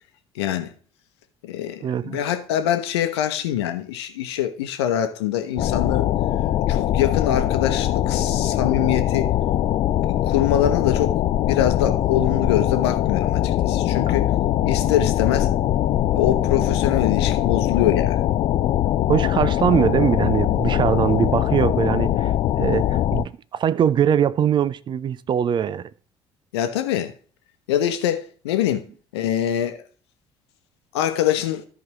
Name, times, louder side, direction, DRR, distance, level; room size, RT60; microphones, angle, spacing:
voice 1, 0.3-0.7 1.4-6.1 6.7-9.3 10.0-14.3 14.6-15.5 16.1-18.2 22.6-22.9 26.5-27.1 27.7-28.9 29.1-29.8 30.9-31.7, left 10 dB, 70° left, 0.9 m, -24 dB
voice 2, 1.8-2.2 19.1-22.3 22.6-25.9, right 9 dB, 35° right, 0.4 m, -22 dB
sound 1, 5.6-23.2, left 12 dB, 40° left, 0.4 m, -21 dB
13.5 x 5.1 x 3.0 m
figure-of-eight pair, 55°, 14 cm